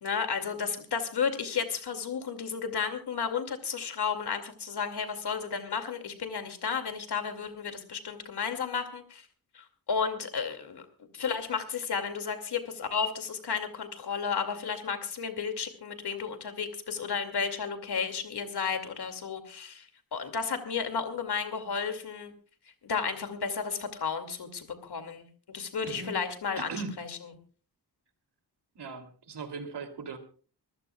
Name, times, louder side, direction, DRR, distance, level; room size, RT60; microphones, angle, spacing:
voice 1, 0.0-9.3 9.5-10.8 11.1-22.3 22.8-27.2, left 6 dB, 75° left, 7 dB, 2.5 m, -33 dB
voice 2, 26.6-26.9 28.7-30.2, right 4 dB, 85° right, 6 dB, 3.0 m, -39 dB
26.0 x 15.0 x 2.4 m, 0.39 s
wide cardioid pair, 170°, 40 cm